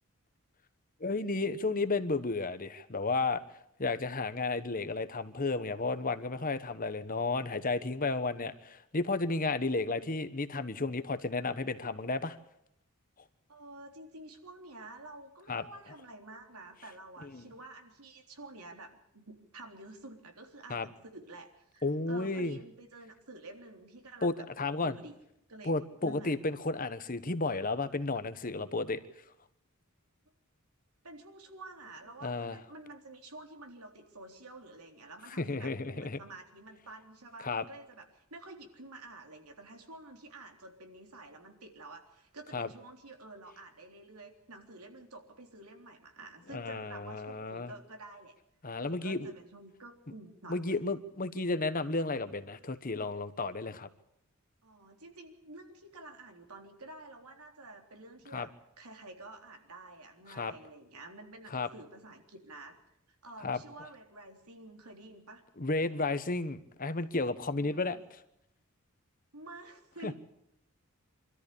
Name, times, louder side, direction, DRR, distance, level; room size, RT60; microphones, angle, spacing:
voice 1, 1.0-3.4 3.8-12.4 15.5-15.6 17.2-17.5 20.7-20.9 21.8-22.6 24.2-24.9 25.6-29.0 32.2-32.6 35.4-36.2 37.4-37.6 42.5-42.7 46.5-47.7 48.6-49.3 50.5-53.9 58.3-58.5 60.3-60.5 61.5-61.7 63.4-63.6 65.6-68.0 70.0-70.1, left 3 dB, 40° left, 12 dB, 1.2 m, -33 dB
voice 2, 9.6-10.1 13.5-24.4 24.8-25.1 25.5-26.4 31.0-48.3 48.8-50.9 54.6-58.5 58.8-62.8 63.2-65.4 67.5-68.0 69.3-70.1, right 2 dB, 90° right, 3 dB, 3.7 m, -50 dB
25.0 x 13.5 x 8.5 m, 0.80 s
head